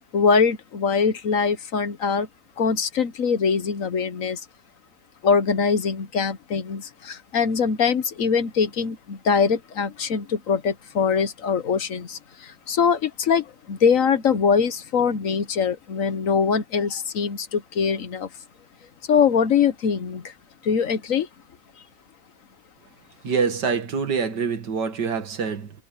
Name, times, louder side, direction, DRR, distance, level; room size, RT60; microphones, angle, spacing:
voice 1, 0.1-2.3 2.6-4.4 5.2-18.3 19.1-20.3 20.6-21.3, left 6 dB, 55° left, 1.3 m, -22 dB
voice 2, 23.2-25.7, right 5 dB, 90° right, 2.4 m, -25 dB
omnidirectional pair, 1.8 m